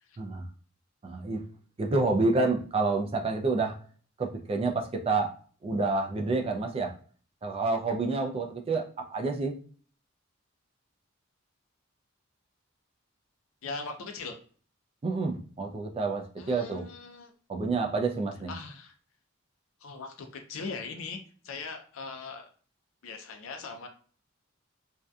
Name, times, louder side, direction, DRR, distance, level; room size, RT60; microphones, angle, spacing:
voice 1, 1.0-1.4 1.8-3.7 4.2-5.3 5.6-6.9 7.4-9.6 15.0-16.8 17.5-18.5, right 3 dB, 30° right, 3 dB, 0.3 m, -28 dB
voice 2, 13.6-14.3 16.4-17.3 18.5-18.9 19.8-21.2 21.4-22.5 23.0-23.9, left 4 dB, 90° left, 5 dB, 0.4 m, -40 dB
2.6 x 2.2 x 2.3 m, 0.42 s
head